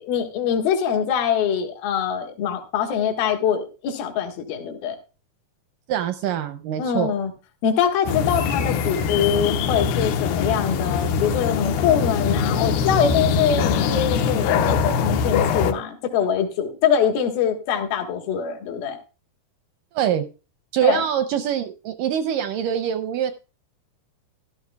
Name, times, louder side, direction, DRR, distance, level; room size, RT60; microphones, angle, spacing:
voice 1, 0.0-5.0 6.8-7.3 7.6-19.0 20.8-21.0, left 8 dB, 75° left, 4 dB, 3.2 m, -23 dB
voice 2, 5.9-7.1 19.9-20.3 20.7-23.3, right 9 dB, 80° right, 9 dB, 1.9 m, -24 dB
sound 1, 8.1-15.7, left 6 dB, 90° left, 3.0 m, -22 dB
14.0 x 12.5 x 2.3 m, 0.32 s
omnidirectional pair, 4.4 m